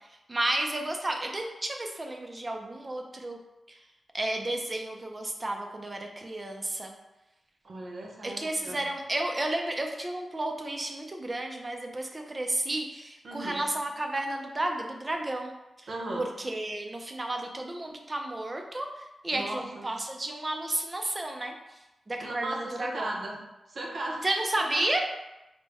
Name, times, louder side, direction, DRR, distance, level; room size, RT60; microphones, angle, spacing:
voice 1, 0.3-3.4 4.1-6.9 8.2-15.5 16.2-21.5 22.1-23.1 24.2-25.0, right 1 dB, 20° right, 3 dB, 0.4 m, -32 dB
voice 2, 7.6-8.9 13.2-13.6 15.9-16.3 19.3-19.9 22.2-23.4 23.7-24.3 24.6-24.9, right 2 dB, 50° right, -1 dB, 0.7 m, -36 dB
5.2 x 2.1 x 3.4 m, 0.98 s
wide cardioid pair, 170°, 0 cm